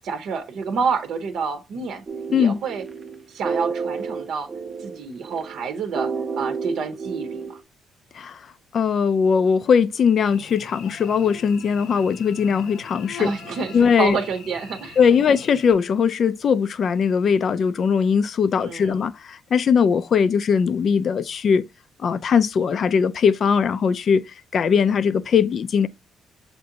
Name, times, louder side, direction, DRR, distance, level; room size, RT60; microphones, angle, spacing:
voice 1, 0.0-2.0 2.3-2.8 3.3-4.5 4.8-7.6 13.2-15.0 18.6-19.0, right 5 dB, 65° right, 0.7 m, -28 dB
sound 1, 2.1-7.6, right 5 dB, 25° right, 0.6 m, -30 dB
voice 2, 8.7-13.3 13.7-14.2 15.0-21.6 22.0-24.2 24.5-25.9, left 6 dB, 45° left, 0.4 m, -20 dB
Cricket / Buzz, 10.3-15.7, left 7 dB, 80° left, 1.0 m, -42 dB
6.5 x 2.6 x 2.7 m
cardioid pair, 135°, 0 cm